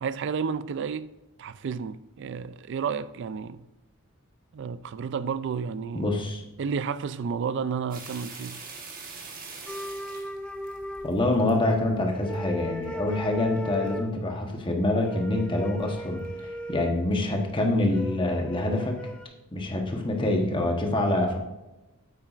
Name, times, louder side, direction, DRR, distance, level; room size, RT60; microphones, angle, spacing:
voice 1, 0.0-1.1 1.4-3.7 4.5-6.1 6.6-8.6, right 6 dB, 55° right, 0.3 m, -31 dB
voice 2, 5.9-6.4 11.0-19.0 19.5-21.4, left 2 dB, 25° left, 1.1 m, -26 dB
sound 1, 7.9-11.6 12.1-12.5 12.8-12.9 13.4-14.0 14.5-14.6 15.1-15.2 15.4-15.7 16.2-16.4 17.1-17.2, right 4 dB, 40° right, 1.3 m, -42 dB
sound 2, 9.7-11.7 12.1-14.2 15.0-17.0 17.9-19.3, equal, 5° left, 0.4 m, -37 dB
8.9 x 8.4 x 2.5 m
head